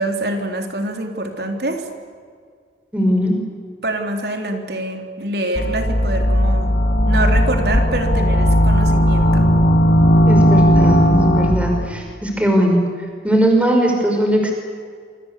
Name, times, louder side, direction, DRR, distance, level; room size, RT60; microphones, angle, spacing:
voice 1, 0.0-1.8 3.8-6.7 7.1-9.5, right 1 dB, 65° right, 4 dB, 3.7 m, -25 dB
voice 2, 2.9-3.4 10.3-12.8 13.2-14.5, right 1 dB, 5° right, 2 dB, 5.5 m, -18 dB
sound 1, 5.5-11.9, equal, 70° left, 3.6 m, -15 dB
27.5 x 25.5 x 8.4 m, 2.1 s
head